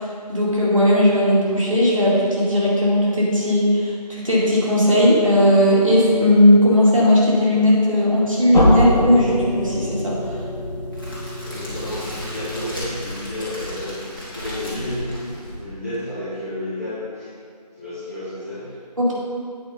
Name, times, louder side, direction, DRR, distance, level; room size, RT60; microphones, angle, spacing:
voice 1, 0.3-10.2 19.0-19.1, left 1 dB, 50° right, -6 dB, 2.3 m, -17 dB
sound 1, 8.5-13.3, equal, 80° left, 1.9 m, -24 dB
Crackle, 10.9-16.0, equal, 30° left, 2.1 m, -35 dB
voice 2, 11.4-17.3 17.7-18.7, left 1 dB, 20° right, -14 dB, 1.5 m, -31 dB
8.9 x 5.2 x 5.2 m, 2.1 s
figure-of-eight pair, 180°, 21 cm